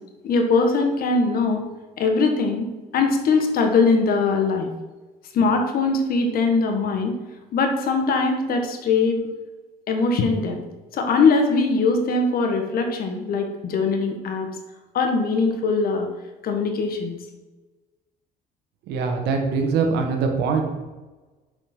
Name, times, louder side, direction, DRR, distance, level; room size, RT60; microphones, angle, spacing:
voice 1, 0.2-1.6 2.0-2.7 2.9-4.7 5.3-7.1 7.5-9.2 9.9-10.6 10.9-14.5 14.9-16.1 16.4-17.1, left 4 dB, 60° left, 4 dB, 1.4 m, -21 dB
voice 2, 18.9-20.7, right 5 dB, 85° right, 3 dB, 1.5 m, -22 dB
6.9 x 5.3 x 6.0 m, 1.2 s
cardioid pair, 110°, 17 cm